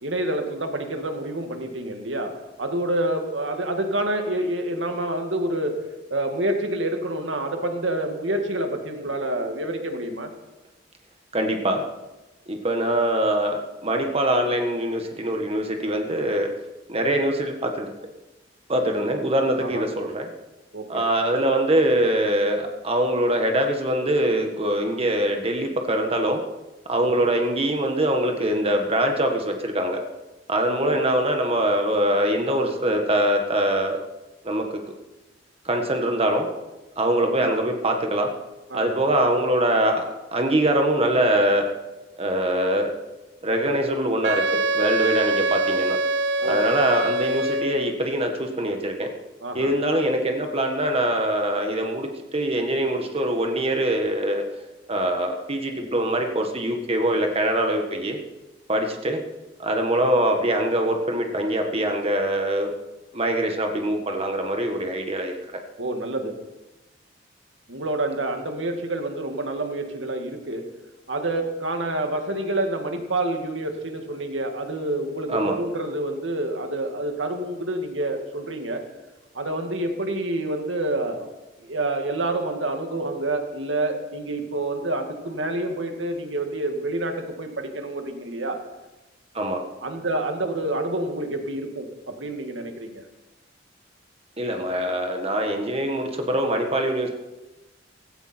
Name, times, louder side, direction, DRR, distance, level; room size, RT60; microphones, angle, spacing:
voice 1, 0.0-5.9 6.1-10.3 19.6-19.8 20.7-21.0 27.0-27.3 30.8-31.0 37.4-37.6 38.7-39.0 46.3-46.7 49.4-49.7 55.7-56.0 65.8-66.4 67.7-70.6 71.1-78.8 79.3-81.3 81.6-88.6 89.8-93.0, right 1 dB, 85° right, 4 dB, 2.1 m, -28 dB
voice 2, 11.3-11.8 12.5-16.5 16.9-17.9 18.7-20.3 20.9-26.4 26.9-30.0 30.5-34.0 34.4-34.8 35.6-36.5 37.0-38.3 38.7-40.0 40.3-41.6 42.2-42.9 43.4-46.0 46.4-49.1 49.5-54.4 54.9-58.2 58.7-59.2 59.6-62.7 63.1-65.3 75.3-75.5 89.3-89.6 94.4-97.1, right 1 dB, 35° right, 3 dB, 1.6 m, -23 dB
Wind instrument woodwind instrument, 44.2-48.0, right 2 dB, 65° right, 0.8 m, -24 dB
17.5 x 16.5 x 4.5 m, 1.1 s
head